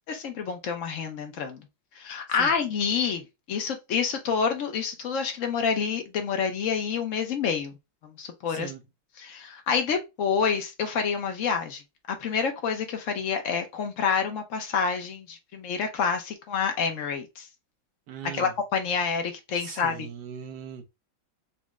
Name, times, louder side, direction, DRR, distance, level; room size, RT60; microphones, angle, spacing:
voice 1, 0.1-1.6 1.9-7.7 8.0-8.7 9.2-11.8 12.1-17.5 18.3-20.0, left 6 dB, 70° left, 0.7 m, -28 dB
voice 2, 8.5-8.8 18.1-18.6 19.6-20.8, right 8 dB, 65° right, 1.2 m, -40 dB
4.1 x 2.2 x 3.5 m
omnidirectional pair, 2.2 m